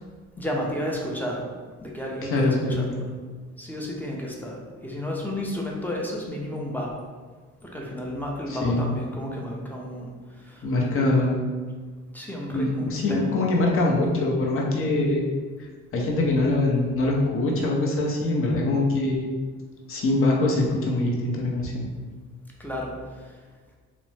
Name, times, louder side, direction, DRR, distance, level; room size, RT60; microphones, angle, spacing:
voice 1, 0.4-1.4 1.8-3.1 3.6-7.0 7.6-11.1 12.1-13.5 22.6-23.4, equal, 5° left, -2 dB, 0.5 m, -32 dB
voice 2, 2.2-2.9 8.5-8.8 10.6-11.4 12.5-15.3 15.9-19.4 19.9-21.8, left 2 dB, 45° left, -2 dB, 0.6 m, -23 dB
2.5 x 2.0 x 3.1 m, 1.5 s
cardioid pair, 90°, 30 cm